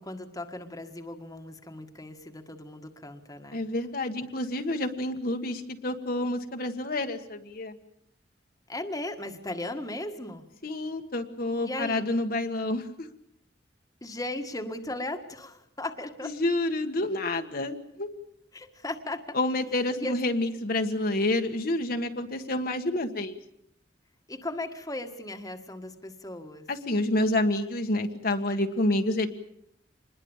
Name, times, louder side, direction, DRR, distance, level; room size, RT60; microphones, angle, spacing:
voice 1, 0.0-3.6 8.7-10.5 11.6-12.0 14.0-16.3 18.5-19.2 20.0-20.2 24.3-26.7, left 2 dB, 20° left, 5 dB, 1.8 m, -37 dB
voice 2, 3.5-7.8 10.6-13.1 16.2-18.1 19.3-23.4 26.7-29.3, left 1 dB, 55° left, 5 dB, 1.6 m, -28 dB
26.5 x 21.0 x 7.3 m, 0.77 s
head